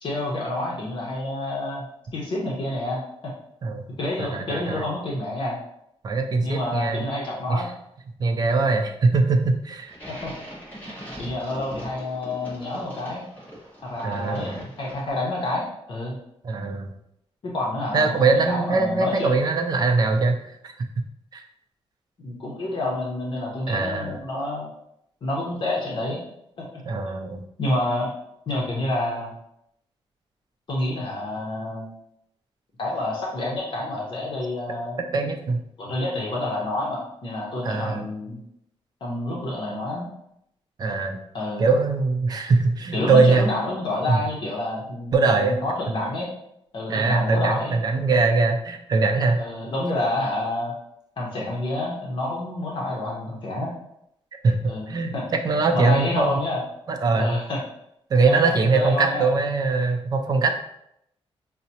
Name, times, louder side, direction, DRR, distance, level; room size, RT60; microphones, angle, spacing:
voice 1, 0.0-1.8 2.1-3.3 4.0-5.6 6.4-7.7 10.1-10.3 11.2-13.2 13.8-16.2 17.4-19.3 22.2-24.7 25.2-26.2 26.6-26.7 27.6-28.1 28.5-29.3 30.7-31.9 32.8-35.0 35.8-38.4 39.0-40.1 41.3-41.6 42.9-46.3 46.7-47.8 49.4-50.7 51.2-53.7 54.7-55.2 55.7-56.6 57.2-57.6 58.2-59.3, left 1 dB, 50° left, -4 dB, 0.8 m, -28 dB
voice 2, 4.2-4.8 6.0-7.1 7.5-7.6 8.2-9.9 14.0-14.6 16.4-16.9 17.9-20.7 21.3-21.4 23.7-24.2 26.9-27.4 35.1-35.6 37.6-38.0 40.8-41.2 41.6-43.5 44.1-44.2 45.1-45.6 46.9-49.4 54.3-56.4 56.9-57.4 58.1-60.5, right 3 dB, 40° right, 5 dB, 0.4 m, -22 dB
sound 1, 9.9-15.4, equal, 15° left, 1.2 m, -41 dB
5.6 x 2.0 x 2.8 m, 0.77 s
wide cardioid pair, 160°, 11 cm